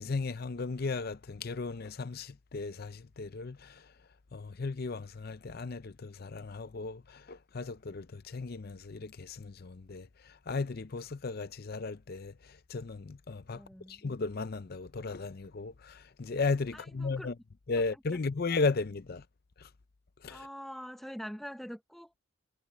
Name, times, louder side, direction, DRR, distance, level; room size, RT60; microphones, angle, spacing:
voice 1, 0.0-3.9 4.3-13.6 13.9-17.3 17.7-19.2 19.6-19.7 20.2-20.5, left 4 dB, 45° left, 0.6 m, -35 dB
voice 2, 13.5-14.0 16.7-17.3 20.3-22.2, equal, ahead, 0.7 m, -44 dB
head